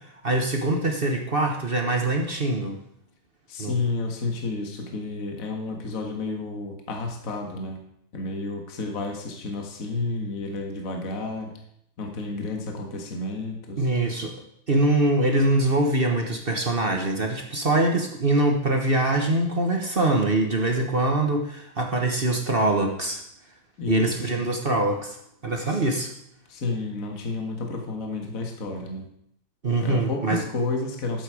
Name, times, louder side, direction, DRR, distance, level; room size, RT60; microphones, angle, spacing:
voice 1, 0.0-2.7 3.6-3.7 13.8-14.3 14.7-23.2 23.9-25.2 25.4-26.1 29.6-30.4, right 2 dB, 35° right, 2 dB, 1.0 m, -23 dB
voice 2, 3.5-7.8 8.1-11.5 12.0-13.9 23.8-24.4 25.7-25.8 26.5-29.1 29.8-31.2, left 3 dB, 40° left, 2 dB, 1.9 m, -31 dB
12.5 x 8.2 x 4.9 m, 0.72 s
omnidirectional pair, 2.4 m